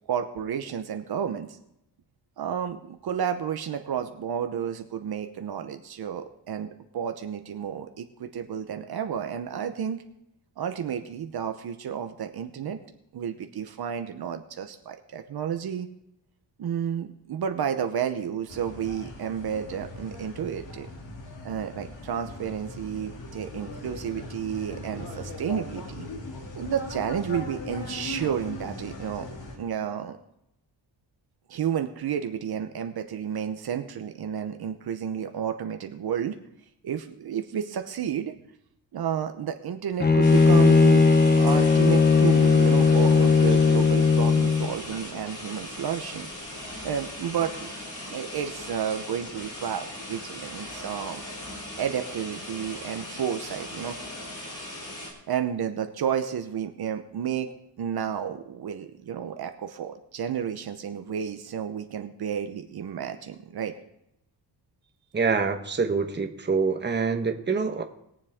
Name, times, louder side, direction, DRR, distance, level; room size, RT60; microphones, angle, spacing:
voice 1, 0.1-1.6 2.4-10.0 10.6-12.8 13.1-15.9 16.6-20.9 21.4-26.1 26.5-29.3 29.6-30.2 31.5-36.4 36.8-38.3 38.9-41.1 41.4-46.3 46.8-47.7 48.1-51.2 51.8-54.0 55.3-63.8, right 8 dB, 60° right, 7 dB, 0.9 m, -31 dB
sound 1, 18.5-29.6, left 2 dB, 90° left, 2.8 m, -39 dB
Bowed string instrument, 40.0-44.8, left 4 dB, 25° left, 0.9 m, -18 dB
sound 2, 40.2-55.1, left 1 dB, 40° left, 3.8 m, -39 dB
voice 2, 65.1-67.8, right 5 dB, 25° right, 5 dB, 1.2 m, -25 dB
21.5 x 7.4 x 3.6 m, 0.81 s
cardioid pair, 130°, 43 cm